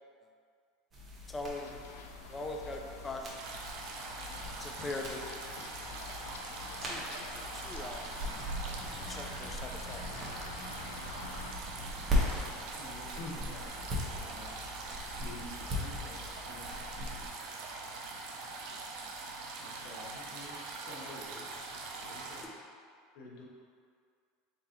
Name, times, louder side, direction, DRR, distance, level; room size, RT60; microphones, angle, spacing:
sound 1, 0.9-17.3, left 1 dB, 25° right, 1.1 m, -40 dB
voice 1, 1.3-1.8 2.3-3.4 4.6-5.2 6.3-6.5 6.8-8.2 8.6-8.8 9.1-10.0 22.4-22.5, left 2 dB, 20° left, 2 dB, 0.5 m, -41 dB
Run, 1.6-11.5, left 5 dB, 85° left, 0.3 m, -49 dB
sound 2, 3.4-22.4, right 3 dB, 65° right, 0.6 m, -43 dB
voice 2, 12.7-13.8 14.2-14.7 15.2-16.2 16.5-16.7 19.6-22.4 23.1-23.5, left 2 dB, 70° left, -3 dB, 0.9 m, -48 dB
3.9 x 3.7 x 2.9 m, 2.2 s
supercardioid pair, 100°, 0 cm